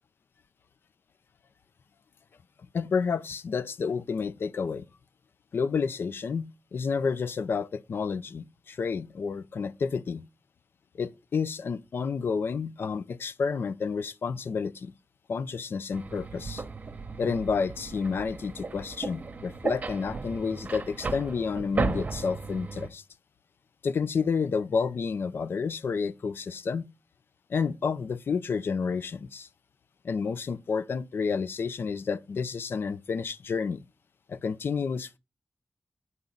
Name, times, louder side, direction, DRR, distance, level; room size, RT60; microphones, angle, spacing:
voice 1, 2.7-4.9 5.5-10.2 11.0-14.9 15.3-16.6 17.2-23.0 23.8-26.9 27.5-29.5 30.0-33.8 34.3-35.2, left 5 dB, 70° left, 0.5 m, -30 dB
sound 1, 15.9-22.9, right 4 dB, 40° right, 0.9 m, -35 dB
9.4 x 3.9 x 7.1 m
wide cardioid pair, 150°, 4 cm